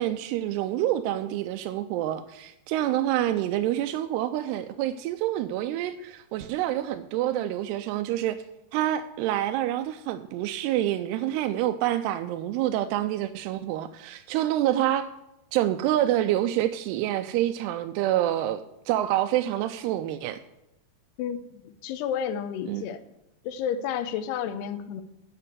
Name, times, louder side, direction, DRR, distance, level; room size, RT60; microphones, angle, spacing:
voice 1, 0.0-8.4 8.7-15.1 15.5-20.4 22.7-22.9, right 13 dB, 90° right, 9 dB, 2.6 m, -27 dB
voice 2, 21.2-23.0 23.4-25.0, left 8 dB, 85° left, 10 dB, 2.8 m, -31 dB
8.7 x 6.7 x 8.1 m, 0.88 s
omnidirectional pair, 4.6 m